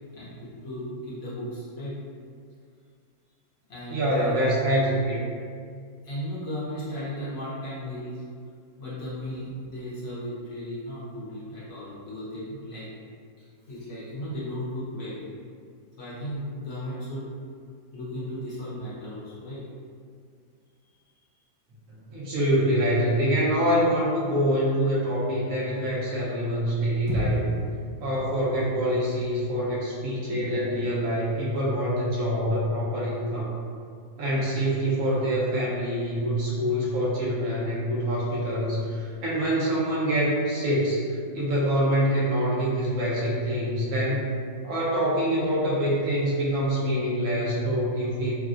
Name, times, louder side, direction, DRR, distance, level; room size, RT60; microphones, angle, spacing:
voice 1, 0.6-2.0 3.7-4.5 6.0-8.2 8.8-12.9 13.4-15.2 16.0-17.3 17.9-19.6, equal, 55° left, -10 dB, 0.9 m, -35 dB
voice 2, 3.9-5.2 22.1-27.5 28.0-33.5 34.2-44.2 44.6-48.3, equal, 60° right, -6 dB, 0.9 m, -25 dB
sound 1, 27.1-31.4, left 1 dB, 85° right, 0.6 m, -37 dB
3.4 x 2.2 x 2.5 m, 2.1 s
omnidirectional pair, 2.1 m